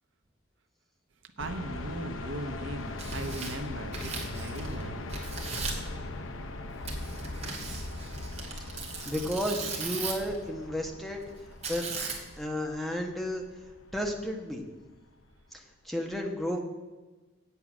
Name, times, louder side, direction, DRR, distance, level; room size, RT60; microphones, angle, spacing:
sound 1, 1.4-15.3, left 2 dB, 85° left, 0.7 m, -41 dB
voice 1, 1.4-5.1, right 2 dB, 70° right, 7 dB, 0.9 m, -38 dB
Tearing, 2.8-4.8 5.1-5.9 6.9-10.4 11.6-12.4, right 4 dB, 35° right, 1.9 m, -37 dB
voice 2, 9.0-11.2 11.7-11.8 12.4-13.4 13.9-14.6 15.5-16.6, equal, ahead, 1 dB, 1.1 m, -32 dB
8.3 x 8.2 x 6.1 m, 1.2 s
head